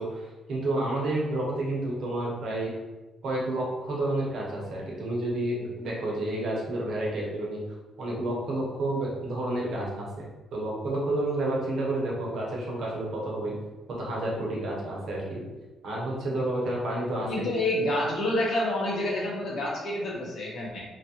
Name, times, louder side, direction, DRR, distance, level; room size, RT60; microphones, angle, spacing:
voice 1, 0.0-2.7 3.2-7.6 8.0-13.5 13.9-15.4 15.8-17.5, right 1 dB, 70° right, -4 dB, 1.0 m, -30 dB
voice 2, 17.3-20.8, left 1 dB, 65° left, -3 dB, 1.0 m, -28 dB
3.1 x 2.5 x 2.8 m, 1.1 s
cardioid pair, 90°, 0 cm